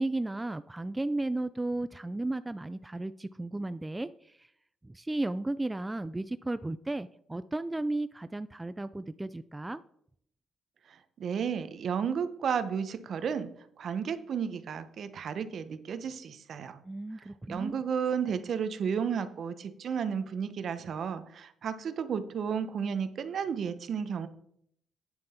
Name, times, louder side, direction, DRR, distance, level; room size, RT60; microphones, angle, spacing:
voice 1, 0.0-4.5 4.8-9.8 16.8-17.7, right 2 dB, 15° right, 13 dB, 0.3 m, -34 dB
voice 2, 10.9-13.5 13.8-16.8 17.5-24.3, right 7 dB, 60° right, 12 dB, 0.8 m, -33 dB
8.9 x 7.4 x 4.3 m, 0.70 s
cardioid pair, 90°, 0 cm